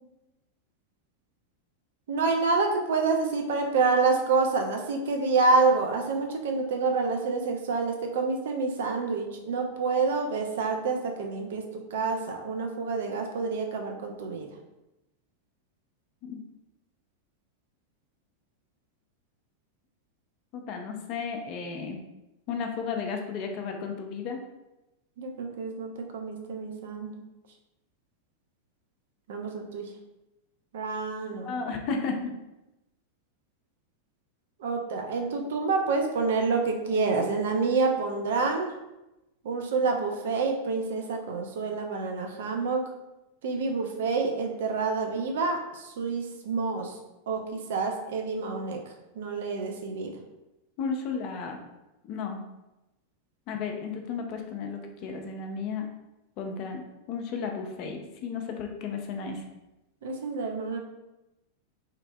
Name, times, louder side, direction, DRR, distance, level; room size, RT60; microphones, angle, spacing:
voice 1, 2.1-11.6 11.9-14.5 25.2-27.2 29.3-29.9 30.7-31.5 34.6-38.7 39.4-42.8 43.4-46.9 47.3-48.8 49.1-50.1 60.0-60.8, right 4 dB, 55° right, 3 dB, 0.4 m, -28 dB
voice 2, 20.5-22.0 22.5-24.4 31.4-32.3 50.8-51.6 52.1-52.4 53.5-55.9 56.4-56.8 57.1-59.4, left 5 dB, 40° left, 3 dB, 0.4 m, -33 dB
2.8 x 2.4 x 2.2 m, 0.96 s
figure-of-eight pair, 90°, 0 cm